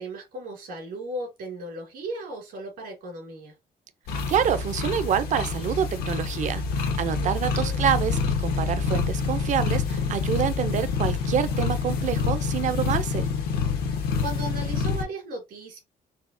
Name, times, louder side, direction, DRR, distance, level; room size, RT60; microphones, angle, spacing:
voice 1, 0.0-3.6 7.2-7.9 13.8-15.8, right 1 dB, 75° right, 2.0 m, -37 dB
sound 1, 4.1-15.0, left 5 dB, 90° left, 0.9 m, -27 dB
voice 2, 4.3-13.3, right 9 dB, 50° right, 0.4 m, -27 dB
4.2 x 2.1 x 2.5 m
cardioid pair, 120°, 16 cm